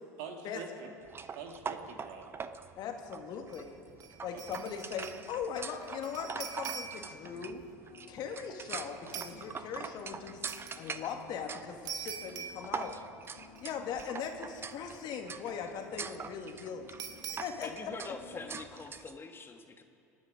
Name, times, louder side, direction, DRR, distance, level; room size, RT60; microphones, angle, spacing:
voice 1, 0.2-0.9 1.3-2.4 4.3-4.7 17.9-18.0, right 5 dB, 70° right, 3 dB, 2.2 m, -46 dB
sound 1, 1.1-19.2, right 6 dB, 25° right, 0.7 m, -44 dB
voice 2, 2.8-3.8 4.2-7.6 8.1-10.4 10.8-13.0 13.6-17.0 17.3-17.9 18.3-18.4, left 7 dB, 50° left, 4 dB, 1.9 m, -40 dB
sound 2, 3.5-3.7 4.0-5.3 5.5-7.2 9.1-9.4 10.5-10.8 11.9-13.3 13.6-13.7 14.0-14.7 17.0-17.7, right 7 dB, 45° right, 1.4 m, -44 dB
sound 3, 5.0-18.7, left 6 dB, 85° left, 1.8 m, -59 dB
voice 3, 12.6-13.0 17.6-19.8, left 4 dB, 25° left, 5 dB, 1.6 m, -45 dB
26.0 x 9.6 x 5.1 m, 2.5 s
hypercardioid pair, 85°, 9 cm